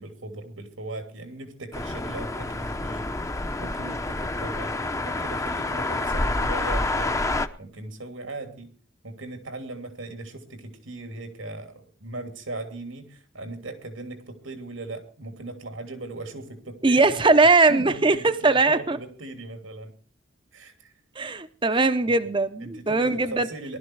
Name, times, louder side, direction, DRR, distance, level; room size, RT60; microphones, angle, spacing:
voice 1, 0.0-4.7 5.0-7.2 7.6-8.7 9.0-17.3 17.7-19.9 20.5-20.9 22.6-23.8, right 2 dB, 90° right, 3.0 m, -38 dB
sound 1, 1.7-7.5, left 2 dB, 15° left, 0.7 m, -28 dB
voice 2, 16.8-19.0 21.2-23.5, right 3 dB, 25° right, 0.7 m, -20 dB
19.0 x 12.5 x 4.7 m
head